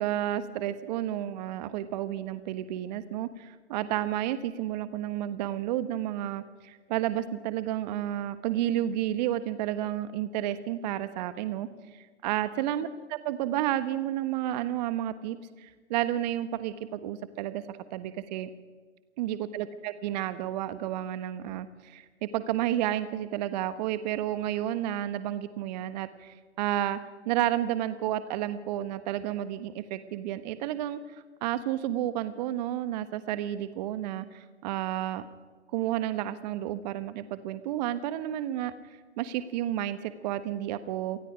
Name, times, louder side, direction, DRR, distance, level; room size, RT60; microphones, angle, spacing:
voice 1, 0.0-18.5 19.2-27.0 27.2-31.0 31.4-35.3 35.7-38.7 39.2-41.2, right 12 dB, 35° right, 12 dB, 1.2 m, -31 dB
27.0 x 19.5 x 5.1 m, 1.4 s
hypercardioid pair, 130°, 36 cm